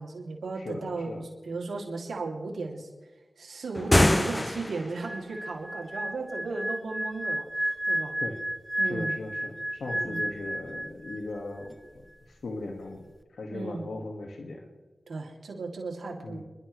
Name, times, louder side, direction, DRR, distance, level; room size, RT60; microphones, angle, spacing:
voice 1, 0.0-2.9 3.4-8.2 8.8-9.1 9.9-10.2 13.5-13.9 15.1-16.4, right 3 dB, 80° right, -1 dB, 2.6 m, -35 dB
voice 2, 0.6-1.2 8.2-8.4 8.8-12.0 12.4-13.0 13.3-14.6 16.2-16.4, left 2 dB, 85° left, 3 dB, 1.7 m, -38 dB
door slam processed, 3.7-5.0, left 1 dB, 20° left, 0.4 m, -24 dB
sound 1, 5.0-11.4 11.6-11.9, right 1 dB, 5° right, 0.9 m, -32 dB
30.0 x 11.5 x 3.2 m, 1.2 s
cardioid pair, 40°, 0 cm